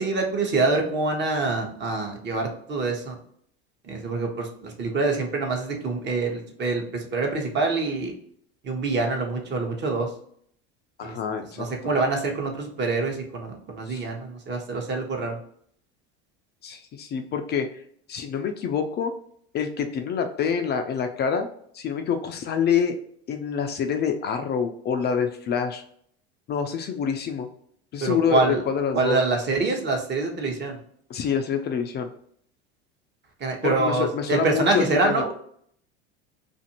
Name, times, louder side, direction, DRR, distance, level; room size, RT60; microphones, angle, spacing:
voice 1, 0.0-3.2 3.8-8.1 8.6-10.1 11.0-11.2 11.6-15.4 28.0-28.6 28.9-30.8 33.4-35.3, right 3 dB, 30° right, 2 dB, 0.9 m, -25 dB
voice 2, 11.0-11.9 13.9-14.0 16.6-17.7 18.1-19.1 19.5-21.5 21.7-22.9 23.3-25.8 26.5-27.5 27.9-29.2 31.1-32.1 33.6-35.2, left 7 dB, 30° left, 6 dB, 0.4 m, -26 dB
2.6 x 2.5 x 2.8 m, 0.63 s
hypercardioid pair, 80°, 34 cm